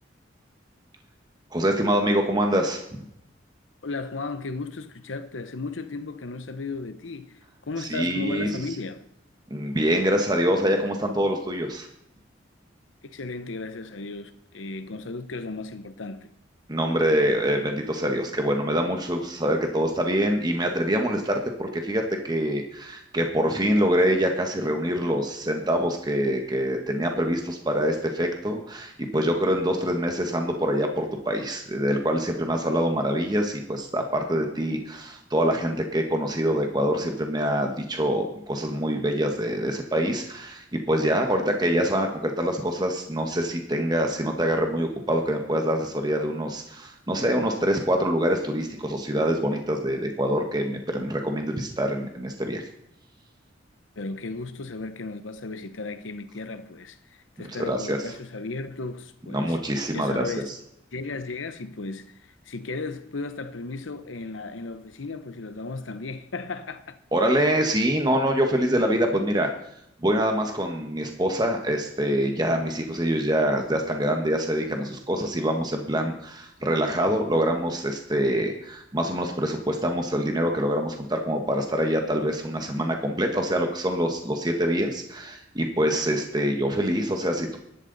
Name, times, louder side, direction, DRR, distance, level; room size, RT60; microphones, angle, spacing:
voice 1, 1.5-2.8 7.8-8.5 9.5-11.9 16.7-52.7 57.4-58.0 59.3-60.3 67.1-69.5 70.0-87.6, equal, 20° right, 1.3 m, -25 dB
voice 2, 3.8-9.1 13.0-16.3 54.0-59.6 59.9-60.5 60.9-67.0, left 3 dB, 90° left, 0.9 m, -35 dB
15.0 x 11.5 x 4.0 m
head